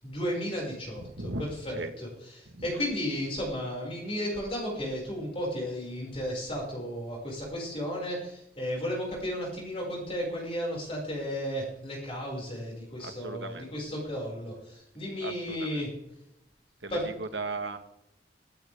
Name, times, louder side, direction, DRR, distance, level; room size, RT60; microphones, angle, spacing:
voice 1, 0.0-2.1 2.4-15.9 16.9-17.1, equal, 30° left, -3 dB, 6.2 m, -34 dB
voice 2, 1.0-1.9 2.5-2.7 13.0-13.7 15.2-15.8 16.8-17.8, right 3 dB, 80° right, 8 dB, 1.8 m, -37 dB
19.0 x 15.5 x 3.7 m, 0.82 s
head